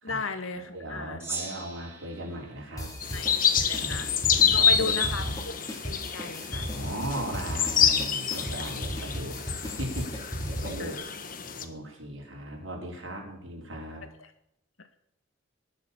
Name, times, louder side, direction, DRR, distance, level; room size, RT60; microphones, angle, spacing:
voice 1, 0.0-1.2 3.1-3.3 3.6-4.1 4.5-5.2 5.8-6.7 10.8-10.9, left 3 dB, 85° left, 8 dB, 2.1 m, -35 dB
voice 2, 0.6-2.9 3.7-5.4 6.7-9.4 9.6-10.1 10.5-11.0 11.6-14.0, right 1 dB, 70° right, -1 dB, 5.5 m, -38 dB
Gong, 1.2-3.8, right 4 dB, 10° right, 3.5 m, -41 dB
sound 1, 2.8-11.0, equal, 15° left, 2.8 m, -36 dB
sound 2, 3.0-11.6, left 7 dB, 40° left, 1.4 m, -27 dB
19.5 x 7.6 x 7.3 m, 0.75 s
head